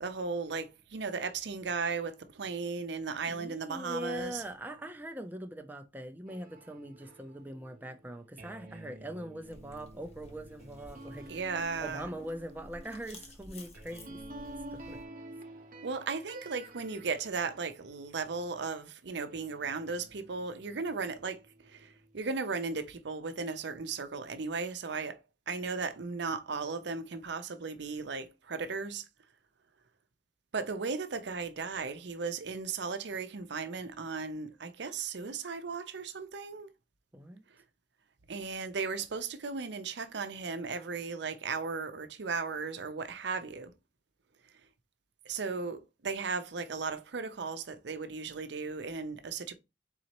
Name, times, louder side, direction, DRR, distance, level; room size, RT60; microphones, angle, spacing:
voice 1, 0.0-4.4 11.3-12.1 15.8-25.2 25.5-29.0 30.5-36.7 38.3-43.7 45.3-49.5, right 4 dB, 70° right, 0.6 m, -36 dB
voice 2, 3.3-11.3 11.8-14.2 14.7-15.0 37.1-37.4, equal, 10° right, 0.5 m, -42 dB
sound 1, 6.3-18.8 19.3-22.2, right 1 dB, 45° right, 0.9 m, -51 dB
sound 2, 9.4-15.0, left 1 dB, 35° left, 1.1 m, -53 dB
4.1 x 3.9 x 2.9 m
head